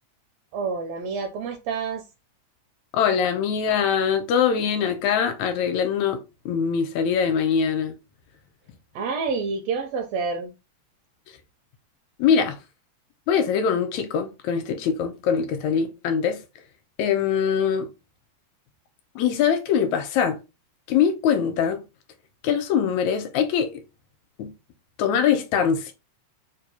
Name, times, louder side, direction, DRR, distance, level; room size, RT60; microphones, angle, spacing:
voice 1, 0.5-2.0 8.9-10.5, right 5 dB, 80° right, 1.5 m, -28 dB
voice 2, 2.9-6.2 6.5-7.9 12.2-12.6 13.3-16.4 17.0-17.9 19.2-20.4 20.9-21.8 22.4-23.7 24.4-24.5 25.0-25.9, left 7 dB, 80° left, 1.9 m, -22 dB
4.6 x 2.2 x 2.7 m
omnidirectional pair, 3.3 m